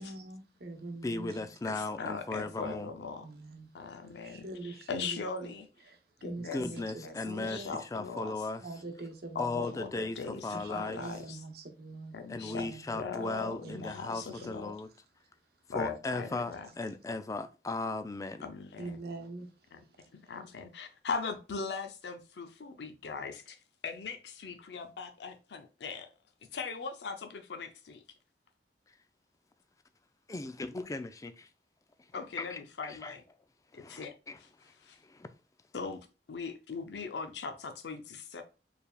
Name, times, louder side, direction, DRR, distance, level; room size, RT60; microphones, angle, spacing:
voice 1, 0.0-1.5 3.2-3.7 4.2-5.5 5.9-7.7 8.6-9.7 10.5-13.0 13.6-14.0 14.3-14.5 18.8-19.5, right 2 dB, 60° right, 0.9 m, -44 dB
voice 2, 1.0-2.9 6.4-7.6 7.9-8.6 9.4-10.2 10.4-11.0 12.3-14.9 15.7-18.4 30.3-31.5 32.4-33.2 33.8-34.4 35.1-35.3, left 3 dB, 20° left, 0.3 m, -37 dB
voice 3, 1.6-3.3 3.7-5.7 6.2-8.5 9.3-11.4 12.1-12.7 12.9-14.8 15.7-16.7 18.4-19.0 19.7-19.8 20.1-23.6 23.8-26.1 26.5-28.0 32.1-33.2 33.7-34.5 34.8-35.0 35.7-38.4, left 5 dB, 70° left, 0.5 m, -40 dB
4.5 x 3.4 x 2.3 m
head